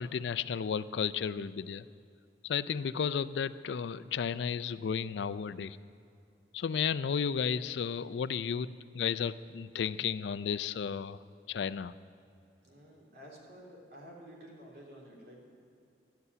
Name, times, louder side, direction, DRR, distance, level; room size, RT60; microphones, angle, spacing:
voice 1, 0.0-1.9 2.4-5.8 6.5-11.2 11.5-11.9, left 7 dB, 75° left, 15 dB, 0.4 m, -33 dB
voice 2, 12.6-15.4, equal, 60° right, -3 dB, 3.2 m, -51 dB
12.5 x 8.2 x 9.6 m, 2.4 s
head